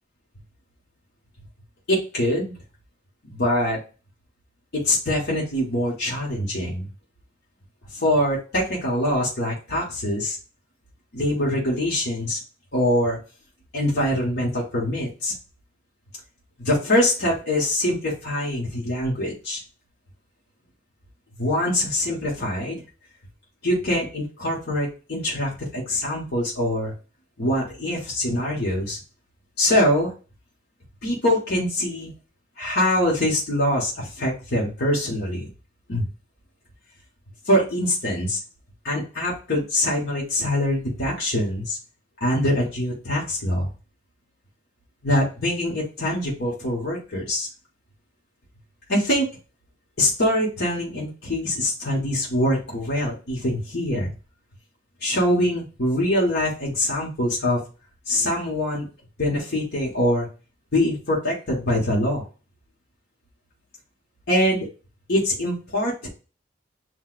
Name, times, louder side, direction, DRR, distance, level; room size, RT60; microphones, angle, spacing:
voice 1, 1.9-2.5 3.2-3.8 4.7-6.9 7.9-10.4 11.1-12.4 12.7-13.2 13.7-15.3 16.6-19.6 21.4-22.8 23.6-26.9 27.4-29.0 29.6-30.1 31.0-32.1 32.6-35.5 35.9-36.0 37.4-38.4 38.8-41.8 42.2-43.7 45.0-47.5 48.9-49.3 50.0-54.1 55.0-57.6 58.1-58.9 59.2-60.3 60.7-62.2 64.3-64.7 65.1-66.1, left 1 dB, 55° left, -5 dB, 1.4 m, -24 dB
7.7 x 2.7 x 2.5 m, 0.35 s
head